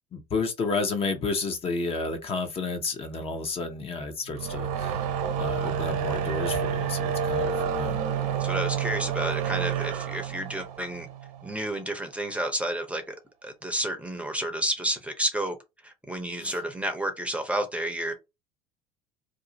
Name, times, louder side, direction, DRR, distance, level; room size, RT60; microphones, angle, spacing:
voice 1, 0.1-5.0 5.4-8.0 16.4-16.6, left 3 dB, 35° left, 0.8 m, -31 dB
sound 1, 4.3-11.6, right 7 dB, 70° right, 0.8 m, -29 dB
voice 2, 8.4-11.1 11.4-13.2 13.4-15.5 15.8-18.1, right 1 dB, 5° right, 0.7 m, -30 dB
2.6 x 2.4 x 3.9 m
hypercardioid pair, 90°, 17 cm